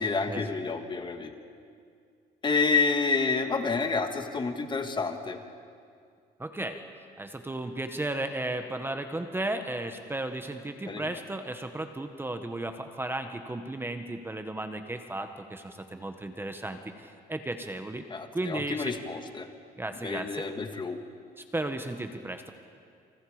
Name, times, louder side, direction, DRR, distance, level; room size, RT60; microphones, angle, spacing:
voice 1, 0.0-1.3 2.4-5.4 10.9-11.1 18.1-19.5 20.0-21.0, left 4 dB, 25° left, 6 dB, 1.8 m, -29 dB
voice 2, 6.4-6.8 7.2-18.0 18.3-18.9 19.8-20.5 21.4-22.5, right 2 dB, 15° right, 7 dB, 1.4 m, -34 dB
29.0 x 27.5 x 5.1 m, 2.3 s
cardioid pair, 110°, 17 cm